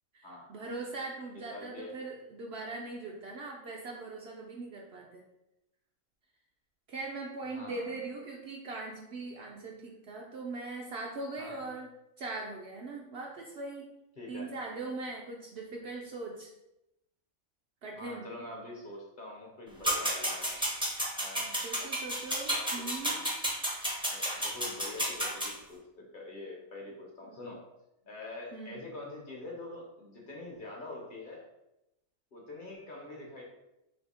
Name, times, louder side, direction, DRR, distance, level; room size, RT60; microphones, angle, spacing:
voice 1, 0.1-5.2 6.9-11.9 12.2-13.9 14.3-16.5 17.8-18.3 21.4-23.2 27.2-27.4 28.5-28.8, right 3 dB, 65° right, -1 dB, 0.7 m, -40 dB
voice 2, 1.3-1.9 7.4-8.0 11.4-11.6 14.2-14.6 17.9-20.6 21.2-21.8 22.5-23.4 24.1-27.6 28.0-31.5 32.3-33.4, left 2 dB, 45° left, -2 dB, 0.8 m, -45 dB
sound 1, 19.8-25.5, equal, 5° right, 0.4 m, -32 dB
3.4 x 2.8 x 4.1 m, 0.90 s
omnidirectional pair, 1.4 m